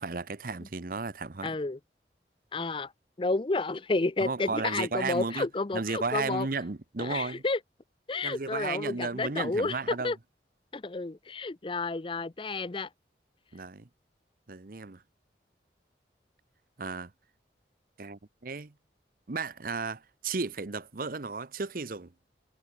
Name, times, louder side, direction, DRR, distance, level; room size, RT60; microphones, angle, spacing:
voice 1, 0.0-1.5 4.2-5.5 5.7-7.4 8.2-10.1 13.5-13.9 14.5-15.0 16.8-17.1 18.0-18.7 19.3-22.1, right 4 dB, 50° right, 0.8 m, -34 dB
voice 2, 1.4-1.8 2.5-2.9 3.2-6.5 7.0-7.6 8.1-10.2 10.7-12.9, left 3 dB, 30° left, 0.6 m, -31 dB
head